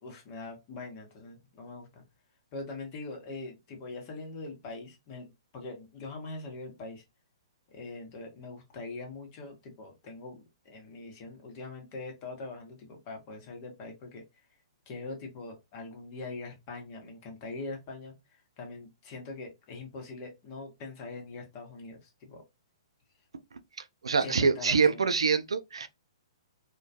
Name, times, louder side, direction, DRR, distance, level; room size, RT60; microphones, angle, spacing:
voice 1, 0.0-2.0 2.5-5.3 5.5-7.0 7.7-14.2 14.9-22.4 24.2-25.0, left 3 dB, 40° left, 0.9 m, -42 dB
voice 2, 24.0-25.9, right 5 dB, 90° right, 0.3 m, -25 dB
2.2 x 2.2 x 2.7 m
hypercardioid pair, 130°, 3 cm